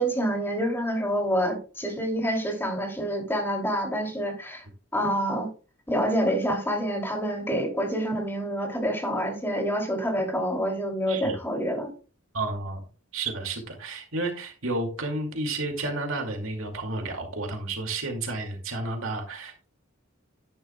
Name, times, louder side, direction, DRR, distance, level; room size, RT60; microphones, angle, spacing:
voice 1, 0.0-4.6 4.9-5.5 5.9-11.9, equal, 10° left, 2 dB, 2.8 m, -27 dB
voice 2, 12.3-12.8 13.1-19.7, right 2 dB, 75° right, 4 dB, 2.4 m, -31 dB
10.5 x 10.5 x 2.3 m, 0.34 s
head